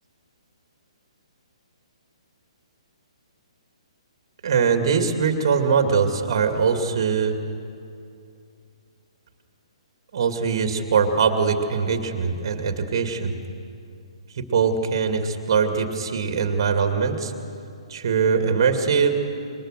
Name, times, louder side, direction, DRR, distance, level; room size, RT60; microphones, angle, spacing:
voice 1, 4.4-7.4 10.1-13.3 14.4-17.3 17.9-19.1, right 6 dB, 45° right, 6 dB, 2.5 m, -22 dB
27.5 x 23.0 x 6.6 m, 2.5 s
figure-of-eight pair, 130°, 3 cm